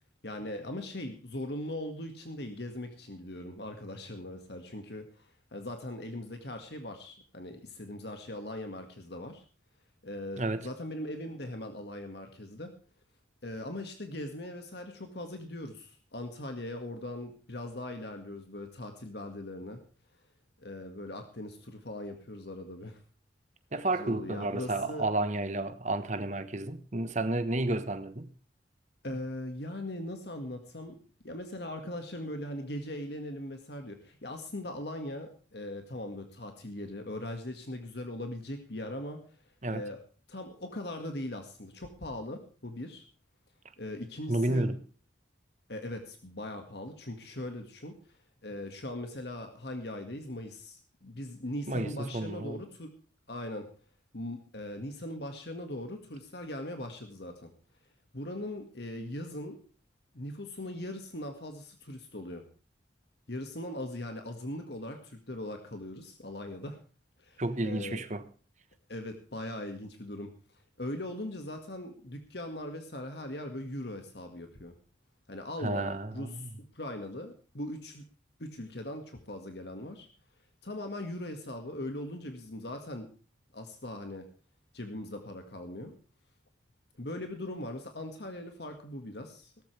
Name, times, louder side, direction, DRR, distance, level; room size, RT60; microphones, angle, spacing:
voice 1, 0.2-9.4 10.0-12.7 13.4-19.8 20.6-23.0 23.9-25.1 29.0-31.0 31.2-39.2 39.7-40.0 40.3-43.0 43.8-44.7 45.7-48.0 48.4-52.9 53.3-53.7 54.1-57.5 58.1-59.6 60.1-62.5 63.3-66.8 67.2-68.0 68.9-70.3 70.8-74.7 75.3-78.0 78.4-80.1 80.6-83.1 83.5-84.3 84.7-85.9 87.0-89.5, left 1 dB, 60° left, 1.9 m, -40 dB
voice 2, 10.4-10.7 23.7-28.3 39.6-39.8 44.3-44.8 51.7-52.6 67.4-68.2 75.6-76.5, right 2 dB, 40° right, 1.2 m, -31 dB
17.5 x 14.0 x 3.4 m
head